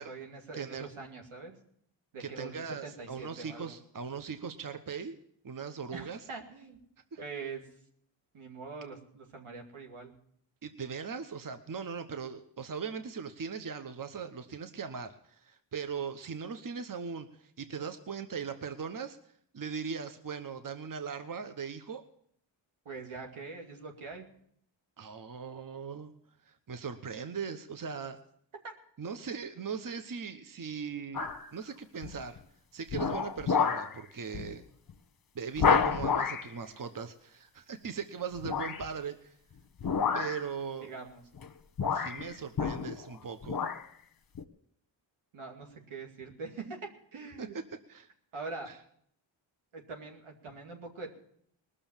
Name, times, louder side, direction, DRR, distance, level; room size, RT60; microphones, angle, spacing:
voice 1, 0.0-1.5 2.1-3.7 5.9-6.8 7.2-7.7 8.3-10.1 22.8-24.2 28.6-28.7 40.9-41.2 45.3-47.5 48.3-48.7 49.7-51.1, right 4 dB, 80° right, 2 dB, 2.4 m, -43 dB
voice 2, 0.5-0.9 2.2-5.2 5.4-6.2 7.1-7.2 10.6-19.2 19.5-22.0 25.0-26.1 26.5-28.2 29.0-32.4 32.7-34.6 35.3-39.4 40.1-40.9 41.9-43.7 47.4-47.5 47.9-48.1 48.6-48.8, right 6 dB, 40° right, 9 dB, 1.1 m, -39 dB
sound 1, 31.1-31.5 32.0-32.4 32.9-33.9 34.3-34.5 34.9-35.0 35.6-36.5 38.4-38.9 39.8-40.5 41.4-41.5 41.8-43.1 43.4-43.8 44.3-44.4, left 6 dB, 45° left, 1.1 m, -29 dB
19.5 x 6.8 x 7.3 m, 0.67 s
cardioid pair, 50°, 49 cm